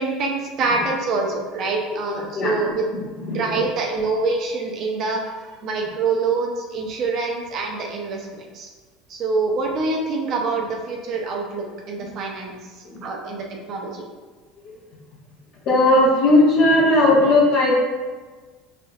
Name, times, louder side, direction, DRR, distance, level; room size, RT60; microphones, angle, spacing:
voice 1, 0.0-2.8 3.3-8.7 9.1-14.0, right 3 dB, 50° right, 1 dB, 0.7 m, -25 dB
voice 2, 1.9-3.6 12.8-13.0 15.6-17.8, left 2 dB, 55° left, -4 dB, 1.1 m, -18 dB
3.8 x 3.6 x 2.3 m, 1.4 s
supercardioid pair, 110°, 0 cm